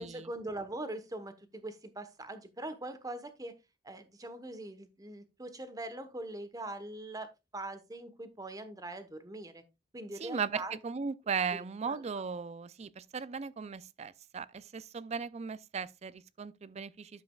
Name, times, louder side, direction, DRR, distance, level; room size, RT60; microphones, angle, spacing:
voice 1, 0.0-3.5 3.8-9.6 9.9-10.7 11.5-12.0, right 1 dB, 20° right, 1.1 m, -42 dB
voice 2, 10.2-17.2, right 5 dB, 35° right, 0.4 m, -37 dB
10.5 x 7.6 x 2.3 m
head